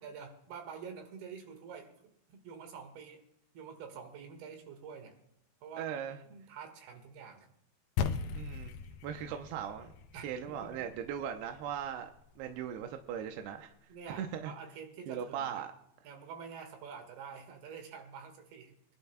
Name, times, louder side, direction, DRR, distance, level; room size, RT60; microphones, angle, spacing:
voice 1, 0.0-3.2 3.5-5.2 5.6-6.0 6.3-7.5 10.1-10.9 13.9-15.6 16.1-18.8, right 6 dB, 75° right, 6 dB, 3.4 m, -47 dB
voice 2, 5.8-6.2 8.3-8.7 9.0-9.9 10.2-12.1 12.4-13.7 14.1-14.5 15.1-15.7, right 8 dB, 90° right, 5 dB, 2.7 m, -38 dB
sound 1, 8.0-12.5, left 6 dB, 90° left, 1.8 m, -39 dB
23.5 x 11.5 x 2.2 m, 0.78 s
omnidirectional pair, 4.7 m